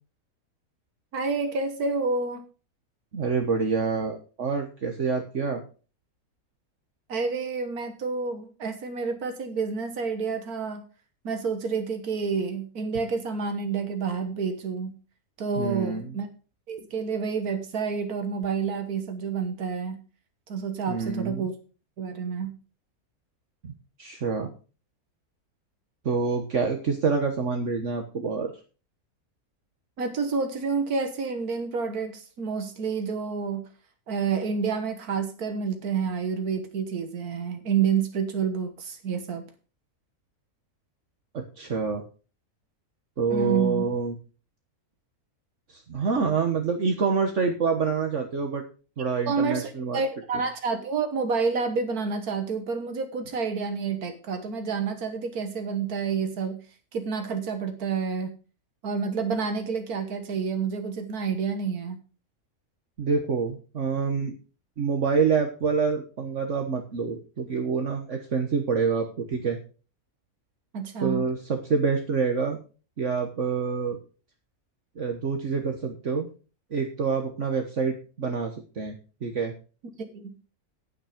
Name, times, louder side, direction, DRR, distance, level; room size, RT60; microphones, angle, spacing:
voice 1, 1.1-2.4 7.1-10.8 11.2-14.9 15.4-16.3 16.7-20.0 20.5-21.5 22.0-22.5 30.0-33.7 34.1-39.4 43.3-43.9 49.3-56.6 56.9-58.3 58.8-62.0 70.7-71.2 80.1-80.5, right 5 dB, 90° right, 6 dB, 1.8 m, -29 dB
voice 2, 3.1-5.6 15.6-16.2 20.9-21.5 23.6-23.7 24.0-24.5 26.0-28.5 41.3-42.0 43.2-44.2 45.7-48.6 49.0-50.0 63.0-64.3 64.8-69.6 71.0-72.6 73.0-74.0 75.0-76.3 76.7-79.0 79.2-79.5, right 5 dB, 55° right, 4 dB, 1.6 m, -27 dB
9.7 x 9.1 x 5.1 m, 0.36 s
omnidirectional pair, 1.5 m